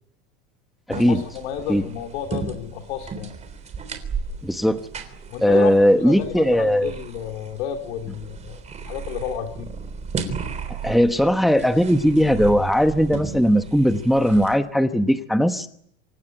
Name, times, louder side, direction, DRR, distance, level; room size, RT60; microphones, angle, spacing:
voice 1, 0.9-3.3 5.3-5.7 6.0-9.7, left 9 dB, 80° left, 3 dB, 3.5 m, -31 dB
sound 1, 0.9-14.5, right 5 dB, 20° right, 3.5 m, -35 dB
voice 2, 4.4-4.8 5.4-6.9 10.8-15.7, equal, ahead, 8 dB, 1.0 m, -18 dB
27.0 x 17.0 x 9.9 m, 0.69 s
supercardioid pair, 160°, 33 cm